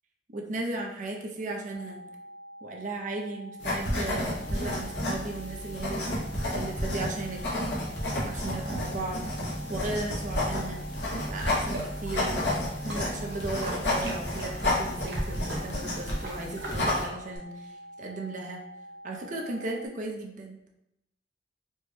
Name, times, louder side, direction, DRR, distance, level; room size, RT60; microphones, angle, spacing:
voice 1, 0.3-2.0 2.6-6.1 6.3-7.4 8.2-9.2 9.7-10.8 11.3-12.4 12.8-17.7 18.0-18.6 19.0-20.6, right 2 dB, 45° right, 0 dB, 0.5 m, -36 dB
sound 1, 1.7-19.9, equal, 50° left, 0.9 m, -46 dB
sound 2, 3.6-17.1, left 1 dB, 85° left, 1.0 m, -31 dB
sound 3, 11.4-17.4, right 2 dB, 70° right, 0.9 m, -41 dB
4.3 x 2.1 x 3.2 m, 0.83 s
head